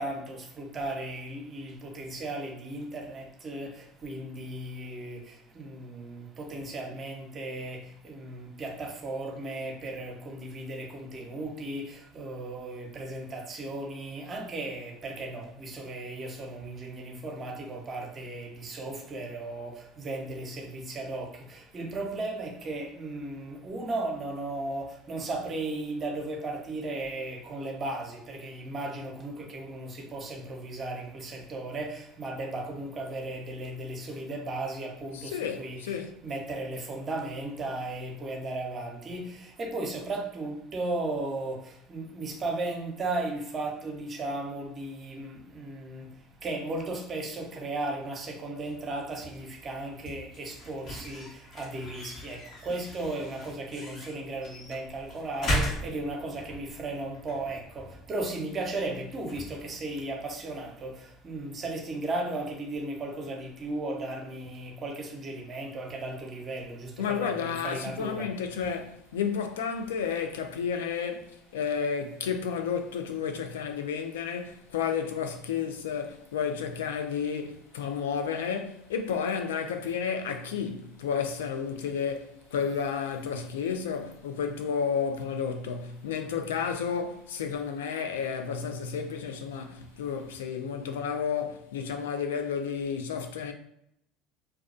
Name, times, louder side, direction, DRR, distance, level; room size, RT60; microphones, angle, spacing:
voice 1, 0.0-68.3, right 2 dB, 35° right, 0.7 m, -36 dB
voice 2, 35.1-36.1 67.0-93.5, left 6 dB, 85° left, 0.3 m, -31 dB
sound 1, 48.7-61.3, equal, 50° left, 1.1 m, -39 dB
2.3 x 2.2 x 2.4 m
hypercardioid pair, 75°, 0 cm